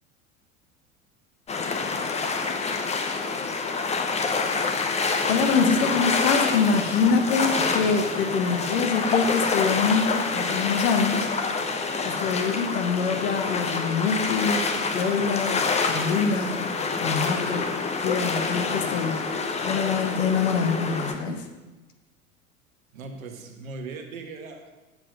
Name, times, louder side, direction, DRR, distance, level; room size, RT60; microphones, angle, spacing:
sound 1, 1.5-21.1, left 4 dB, 15° left, 0.8 m, -27 dB
voice 1, 4.5-4.8 5.2-11.3 12.0-16.7 17.0-19.3 19.6-21.5, left 5 dB, 60° left, 6 dB, 1.3 m, -25 dB
voice 2, 22.9-24.7, right 3 dB, 70° right, 4 dB, 1.4 m, -38 dB
8.0 x 7.3 x 5.1 m, 1.1 s
figure-of-eight pair, 80°, 43 cm